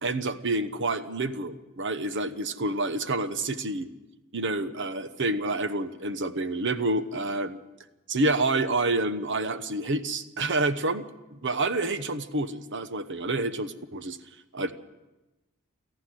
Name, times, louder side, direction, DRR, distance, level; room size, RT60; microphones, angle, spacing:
voice 1, 0.0-3.8 4.3-7.6 8.1-11.0 11.3-14.2 14.5-14.7, right 2 dB, 55° right, 10 dB, 1.0 m, -28 dB
18.0 x 14.5 x 10.0 m, 1.0 s
head